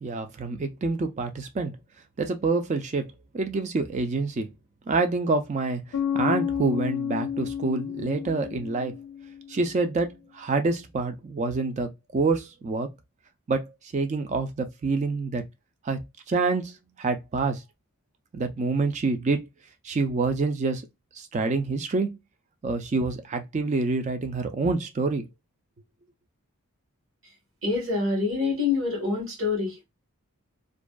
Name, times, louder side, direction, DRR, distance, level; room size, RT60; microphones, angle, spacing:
voice 1, 0.0-1.8 2.2-4.5 4.9-5.8 6.1-8.9 9.5-12.9 13.5-15.4 15.8-16.0 16.3-17.6 18.3-19.5 19.8-20.8 21.2-22.1 22.6-25.2, right 3 dB, 30° right, 0.3 m, -27 dB
Bass guitar, 5.9-9.6, left 8 dB, 70° left, 0.3 m, -30 dB
voice 2, 27.6-29.8, left 4 dB, 60° right, 1.3 m, -26 dB
2.5 x 2.2 x 2.2 m
head